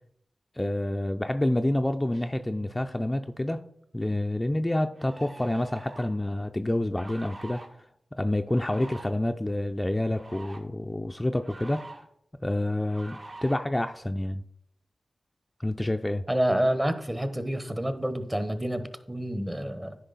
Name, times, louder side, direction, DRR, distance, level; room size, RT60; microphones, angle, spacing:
voice 1, 0.6-3.6 3.9-7.6 8.2-11.9 12.4-14.4 15.6-16.2, left 1 dB, 20° left, 6 dB, 0.5 m, -28 dB
sound 1, 2.1-3.8, right 5 dB, 80° right, 1.9 m, -54 dB
sound 2, 4.1-4.2 4.9-6.2 7.0-7.7 8.5-9.1 10.0-10.6 11.4-12.0 12.9-13.5, right 2 dB, 50° right, 1.8 m, -45 dB
voice 2, 16.3-20.0, right 1 dB, 15° right, 10 dB, 1.1 m, -28 dB
9.9 x 5.0 x 4.1 m, 0.70 s
cardioid pair, 45°, 0 cm